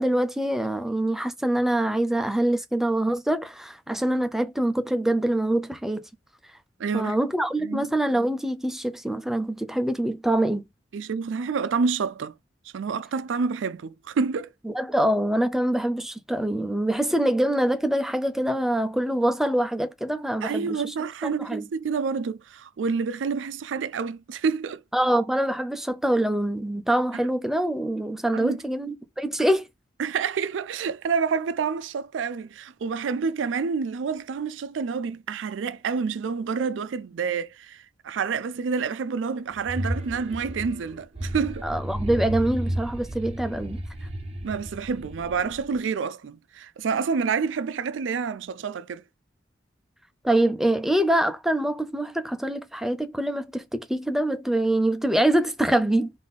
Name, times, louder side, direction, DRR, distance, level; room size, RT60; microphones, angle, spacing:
voice 1, 0.0-6.0 6.9-10.6 14.7-20.8 21.4-21.6 24.9-29.7 41.6-43.8 50.2-56.1, right 1 dB, ahead, 0.5 m, -24 dB
voice 2, 6.8-7.2 7.6-7.8 10.9-12.3 12.7-14.5 20.4-24.8 28.3-28.6 30.0-41.7 44.4-49.0, right 5 dB, 90° right, 0.4 m, -28 dB
sound 1, 39.5-45.8, right 1 dB, 35° right, 0.7 m, -33 dB
3.6 x 2.7 x 4.0 m
head